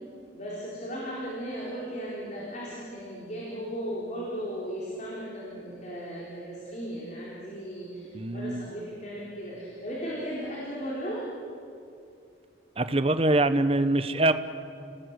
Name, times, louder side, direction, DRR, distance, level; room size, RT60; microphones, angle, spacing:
voice 1, 0.3-11.2, equal, 40° left, -5 dB, 4.4 m, -36 dB
voice 2, 8.1-8.7 12.8-14.3, right 2 dB, 30° right, 11 dB, 1.0 m, -24 dB
30.0 x 18.5 x 8.2 m, 2.5 s
head